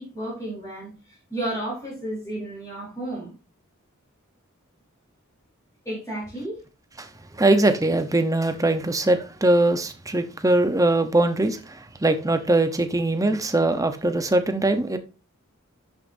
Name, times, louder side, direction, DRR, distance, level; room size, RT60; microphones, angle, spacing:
voice 1, 0.0-3.3 5.8-6.6, right 1 dB, 15° left, 4.4 m, -32 dB
voice 2, 7.3-15.0, right 2 dB, 15° right, 0.9 m, -21 dB
12.0 x 6.3 x 2.7 m
head